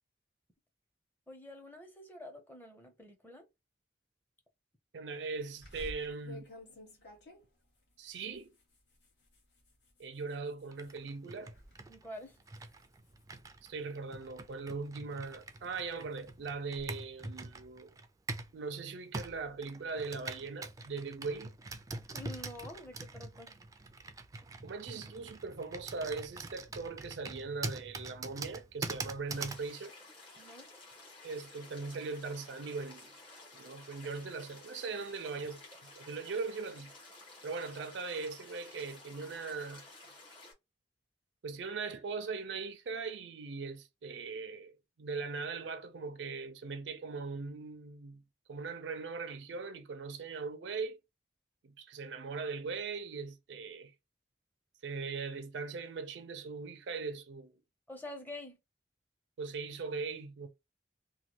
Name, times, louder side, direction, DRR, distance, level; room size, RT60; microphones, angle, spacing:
voice 1, 1.3-3.5 11.9-12.4 22.1-23.6 30.4-30.7 57.9-58.6, left 1 dB, 10° left, 0.6 m, -47 dB
voice 2, 4.9-6.5 8.0-8.5 10.0-11.5 13.6-17.9 18.5-21.5 24.6-29.9 31.2-33.1 33.5-35.6 35.9-36.9 37.4-39.8 41.4-48.2 48.5-51.0 51.6-53.9 54.8-57.5 59.4-60.5, right 4 dB, 85° right, 0.5 m, -40 dB
sound 1, 5.6-11.0 11.4-11.8 12.1-14.2 14.7-16.9, left 1 dB, 70° left, 1.3 m, -53 dB
Computer keyboard, 10.7-18.6 19.1-29.7, right 3 dB, 20° right, 0.3 m, -44 dB
sound 2, 29.3-40.5, left 2 dB, 30° left, 1.4 m, -54 dB
3.0 x 2.2 x 2.9 m
head